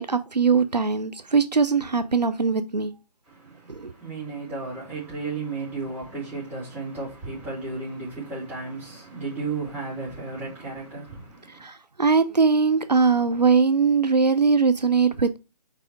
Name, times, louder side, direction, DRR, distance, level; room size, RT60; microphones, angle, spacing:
voice 1, 0.0-2.9 3.7-3.9 11.6-11.7 12.0-15.4, right 5 dB, 85° right, 0.7 m, -21 dB
voice 2, 4.0-11.2, right 3 dB, 10° right, 3.5 m, -33 dB
4.9 x 4.9 x 4.5 m
figure-of-eight pair, 145°, 21 cm